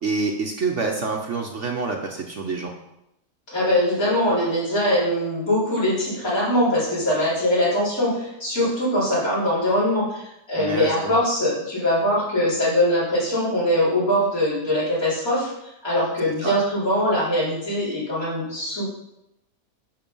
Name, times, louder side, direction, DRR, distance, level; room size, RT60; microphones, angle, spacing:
voice 1, 0.0-2.7 10.6-11.2 16.4-16.6, right 4 dB, 50° right, 2 dB, 1.1 m, -27 dB
voice 2, 3.5-15.5 15.8-18.8, left 1 dB, 55° left, -8 dB, 4.8 m, -22 dB
10.5 x 5.9 x 5.4 m, 0.86 s
omnidirectional pair, 1.8 m